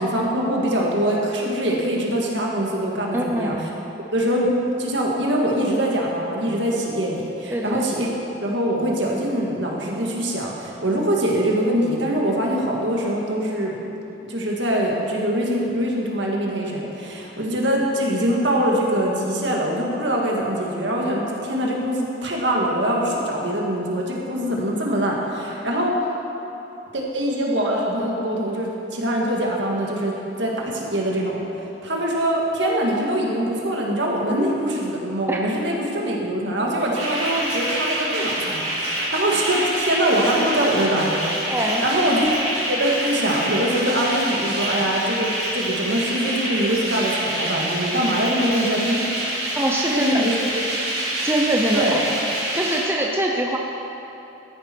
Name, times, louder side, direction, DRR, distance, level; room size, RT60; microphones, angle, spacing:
voice 1, 0.0-3.6 4.1-4.5 4.8-8.1 8.4-13.8 14.3-26.0 26.9-41.5 41.8-49.0 49.9-50.4 51.7-52.0, right 1 dB, 65° right, -2 dB, 1.9 m, -23 dB
voice 2, 3.1-3.6 7.5-7.8 35.3-35.4 41.5-41.8 49.6-50.1 51.2-52.0 52.5-53.6, right 1 dB, 10° right, -1 dB, 0.7 m, -23 dB
sound 1, 36.8-52.8, right 1 dB, 35° right, 3.3 m, -26 dB
14.0 x 10.5 x 4.5 m, 3.0 s
head